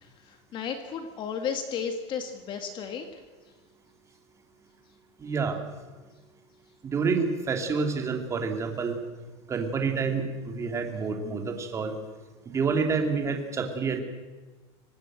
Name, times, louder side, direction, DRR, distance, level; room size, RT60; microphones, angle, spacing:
voice 1, 0.0-3.0, left 7 dB, 35° left, 6 dB, 1.9 m, -34 dB
voice 2, 5.2-5.6 6.8-9.0 9.5-11.9 12.5-14.0, right 5 dB, 20° right, 4 dB, 2.9 m, -28 dB
25.0 x 19.0 x 7.8 m, 1.3 s
supercardioid pair, 150°, 14 cm